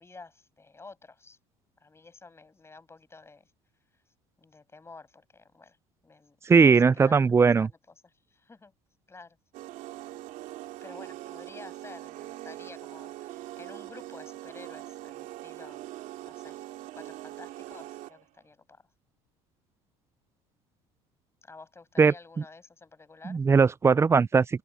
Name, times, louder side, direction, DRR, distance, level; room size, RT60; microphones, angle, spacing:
voice 1, 0.0-1.4 1.8-3.5 4.4-5.8 6.0-7.8 8.0-8.7 9.1-9.4 10.8-16.6 16.9-18.8 21.4-23.4, left 3 dB, 20° left, 7.2 m, -51 dB
voice 2, 6.5-7.7 22.0-22.1 23.2-24.6, right 5 dB, 20° right, 0.4 m, -19 dB
sound 1, 9.5-18.3, right 15 dB, 70° right, 2.7 m, -42 dB
open air
cardioid pair, 105°, 14 cm